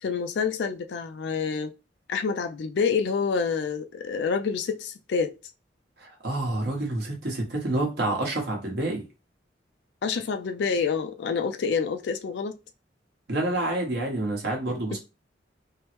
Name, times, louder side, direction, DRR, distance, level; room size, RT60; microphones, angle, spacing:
voice 1, 0.0-1.7 2.1-5.4 10.0-12.6 14.9-15.0, left 5 dB, 75° left, 0.4 m, -27 dB
voice 2, 6.0-9.1 13.3-15.0, right 2 dB, 65° right, 1.0 m, -28 dB
3.3 x 2.1 x 2.9 m
head